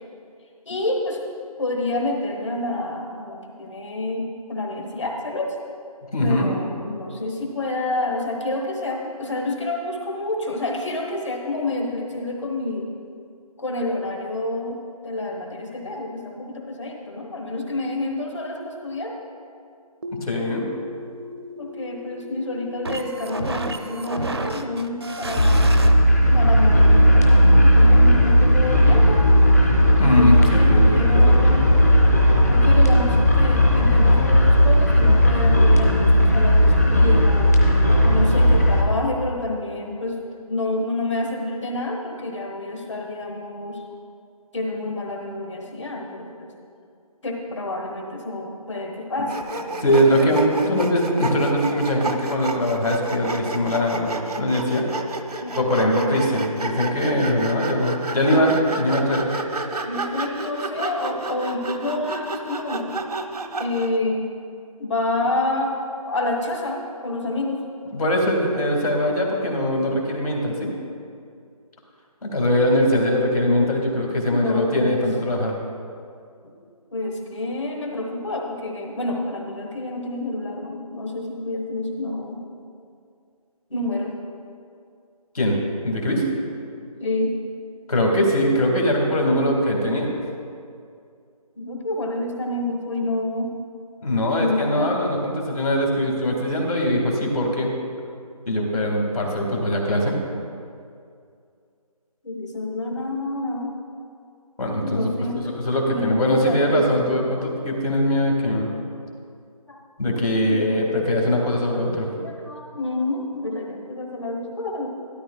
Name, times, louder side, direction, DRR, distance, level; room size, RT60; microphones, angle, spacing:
voice 1, 0.6-1.2 1.6-5.6 6.2-12.9 13.6-19.1 21.6-25.7 26.3-29.3 30.0-31.7 32.5-37.5 38.0-40.2 40.5-43.8 44.5-46.5 47.2-50.8 55.4-56.2 59.9-62.9 63.6-64.2 64.8-67.6 74.3-75.0 76.4-76.5 76.9-82.4 83.7-84.1 87.0-87.3 91.5-93.5 94.4-94.9 102.2-103.7 104.8-105.5 105.8-106.8 109.7-109.8 110.5-111.0 112.1-114.9, left 2 dB, 50° left, 1 dB, 1.5 m, -28 dB
voice 2, 6.1-6.5 20.2-20.7 30.0-31.6 49.8-54.9 55.5-59.3 67.9-70.7 72.2-75.6 85.3-85.6 85.8-86.3 87.9-90.2 94.0-97.7 98.5-100.2 104.6-105.0 105.4-108.7 110.0-112.1, left 1 dB, 70° left, 0 dB, 2.1 m, -21 dB
sound 1, 20.0-25.9, right 2 dB, 45° right, 0.5 m, -32 dB
sound 2, 25.4-38.8, equal, 25° left, 0.6 m, -15 dB
Sawing, 49.3-64.0, right 2 dB, 90° right, 0.9 m, -31 dB
12.5 x 12.5 x 2.3 m, 2.4 s
figure-of-eight pair, 180°, 20 cm